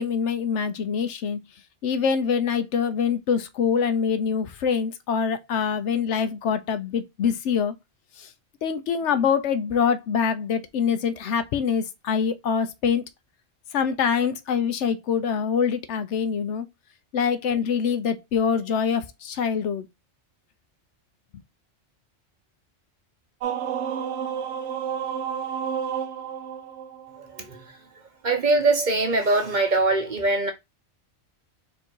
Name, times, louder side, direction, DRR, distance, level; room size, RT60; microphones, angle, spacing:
voice 1, 0.0-1.4 1.8-7.7 8.2-8.3 8.6-13.0 13.7-16.7 17.1-19.9, left 6 dB, 70° left, 0.9 m, -24 dB
sound 1, 23.4-27.6, right 8 dB, 70° right, 1.0 m, -31 dB
voice 2, 27.2-27.8 28.2-30.5, right 2 dB, 45° right, 0.8 m, -22 dB
4.5 x 2.6 x 4.5 m
omnidirectional pair, 1.3 m